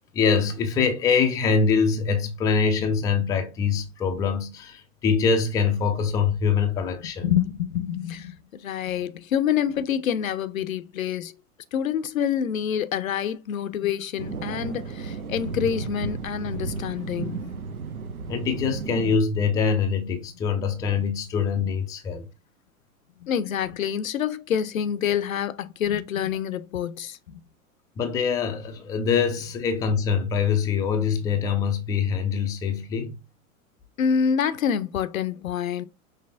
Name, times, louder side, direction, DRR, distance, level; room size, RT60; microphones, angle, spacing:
voice 1, 0.1-7.3 18.3-22.3 28.0-33.2, left 6 dB, 10° left, 0.4 m, -24 dB
voice 2, 7.2-11.4 11.7-17.4 23.2-27.4 34.0-35.9, left 8 dB, 75° left, 0.6 m, -27 dB
sound 1, 14.2-19.2, right 4 dB, 85° right, 0.7 m, -33 dB
5.6 x 3.2 x 2.5 m
figure-of-eight pair, 95°, 42 cm